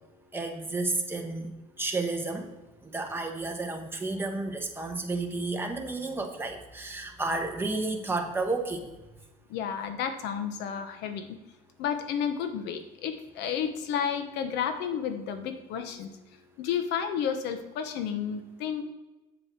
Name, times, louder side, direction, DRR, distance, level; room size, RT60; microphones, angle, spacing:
voice 1, 0.3-2.5 2.8-8.9, right 3 dB, 15° right, 3 dB, 1.3 m, -32 dB
voice 2, 9.5-11.4 11.8-16.1 16.6-18.8, left 8 dB, 90° left, 8 dB, 1.1 m, -31 dB
7.7 x 7.6 x 4.6 m, 1.1 s
cardioid pair, 110°, 17 cm